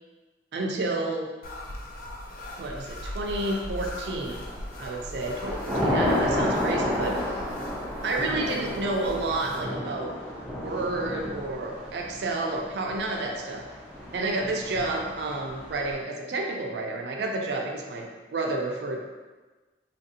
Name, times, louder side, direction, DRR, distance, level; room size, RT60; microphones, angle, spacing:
voice 1, 0.5-1.3 2.6-4.5 4.8-7.4 8.0-10.2 10.5-13.6 14.1-19.1, right 2 dB, 65° right, 1 dB, 0.4 m, -30 dB
sound 1, 1.4-9.6, left 1 dB, 55° left, 0.4 m, -40 dB
Thunder / Rain, 3.8-4.4 4.8-15.9, left 1 dB, 5° right, 0.5 m, -31 dB
2.8 x 2.4 x 2.7 m, 1.3 s
head